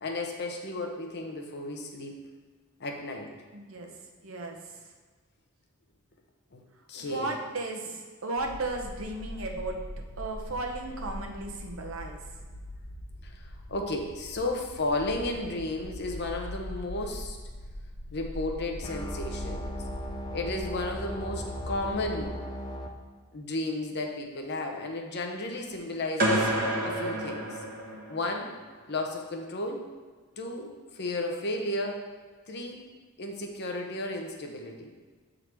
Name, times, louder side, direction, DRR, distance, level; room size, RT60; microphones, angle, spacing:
voice 1, 0.0-2.3 2.8-3.3 6.5-6.6 6.9-7.3 13.2-17.4 18.1-19.7 20.3-22.4 23.3-26.5 26.8-27.6 28.1-28.5 28.9-29.9 30.4-32.0 32.5-32.8 33.2-34.9, left 2 dB, 55° left, 2 dB, 0.9 m, -33 dB
voice 2, 3.5-3.9 4.2-4.8 7.0-9.8 10.2-12.2, right 2 dB, 70° right, 2 dB, 1.0 m, -35 dB
sound 1, 8.4-22.3, equal, 90° left, 1.1 m, -41 dB
sound 2, 18.8-22.9, equal, 20° left, 0.6 m, -37 dB
sound 3, 26.2-28.3, right 1 dB, 45° right, 1.2 m, -28 dB
8.0 x 3.9 x 4.5 m, 1.4 s
head